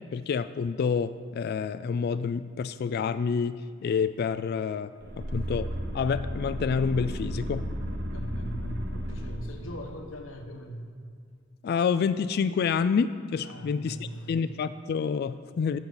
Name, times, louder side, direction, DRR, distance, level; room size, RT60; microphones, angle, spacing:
voice 1, 0.1-7.7 11.6-15.8, left 6 dB, 50° left, 13 dB, 0.3 m, -28 dB
sound 1, 5.0-9.9, equal, 50° right, 1.2 m, -34 dB
voice 2, 8.1-10.9 13.4-14.3, equal, 80° left, 4 dB, 1.1 m, -40 dB
15.0 x 8.6 x 3.9 m, 2.2 s
head